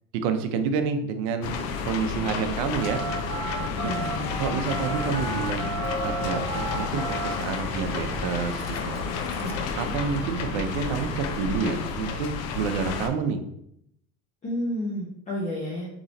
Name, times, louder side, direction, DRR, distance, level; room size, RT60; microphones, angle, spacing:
voice 1, 0.2-3.0 3.8-3.9 4.4-9.0 9.8-13.4, right 5 dB, 80° right, 7 dB, 0.7 m, -29 dB
sound 1, 1.4-13.1, left 5 dB, 50° left, 0.6 m, -31 dB
Telephone, 2.8-9.7, right 6 dB, 55° right, 0.9 m, -35 dB
voice 2, 3.8-4.4 9.4-9.5 14.4-15.9, left 1 dB, 20° left, -6 dB, 0.9 m, -31 dB
Walk footsteps / Bell, 4.3-11.0, left 2 dB, 75° left, 1.4 m, -37 dB
3.8 x 3.0 x 4.1 m, 0.76 s
cardioid pair, 150°, 32 cm